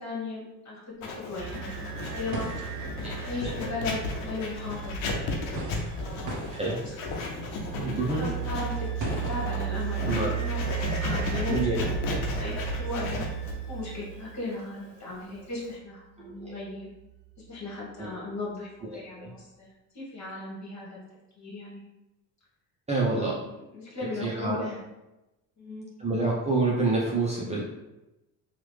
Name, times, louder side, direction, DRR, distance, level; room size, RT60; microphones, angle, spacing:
voice 1, 0.0-2.5 3.2-7.6 8.1-10.6 11.0-13.3 13.7-16.9 17.5-19.7 19.9-21.0 21.4-21.8 23.1-23.4 23.7-24.8 25.6-25.9, left 3 dB, 35° left, -5 dB, 1.5 m, -37 dB
Writing, 1.0-15.8, left 3 dB, 75° left, 0.8 m, -35 dB
sound 1, 1.0-1.1 1.3-13.6, right 2 dB, 40° right, 0.9 m, -42 dB
sound 2, 1.4-14.5, right 9 dB, 90° right, 0.6 m, -35 dB
voice 2, 7.8-8.3 10.1-10.3 11.5-11.8 16.2-16.5 18.0-18.2 19.2-19.3 22.9-23.3 24.2-24.6 26.0-27.6, right 3 dB, 15° right, -6 dB, 0.7 m, -27 dB
3.0 x 2.4 x 3.2 m, 0.97 s
supercardioid pair, 70°, 47 cm